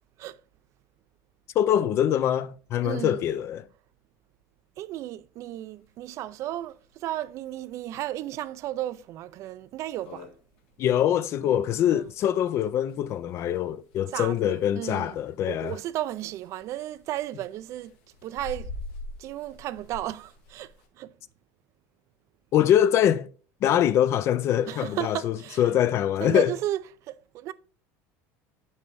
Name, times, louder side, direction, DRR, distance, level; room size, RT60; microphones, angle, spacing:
voice 1, 1.6-3.6 10.8-15.8 22.5-23.3 23.6-26.5, left 10 dB, 40° left, 0.4 m, -24 dB
voice 2, 2.8-3.2 4.8-10.3 11.9-12.0 14.1-15.2 15.4-17.9 18.2-18.7 19.2-20.7 21.0-21.1 24.7-25.6 26.2-26.8 27.1-27.5, right 13 dB, 45° right, 0.4 m, -34 dB
sound 1, 5.8-5.9 6.2-6.3 6.6-6.7 7.3-7.5 8.0-8.1 8.6-8.7 9.1-9.2 9.6-9.7 9.8-20.9, left 2 dB, 75° left, 1.6 m, -45 dB
7.8 x 5.3 x 3.3 m
cardioid pair, 145°, 7 cm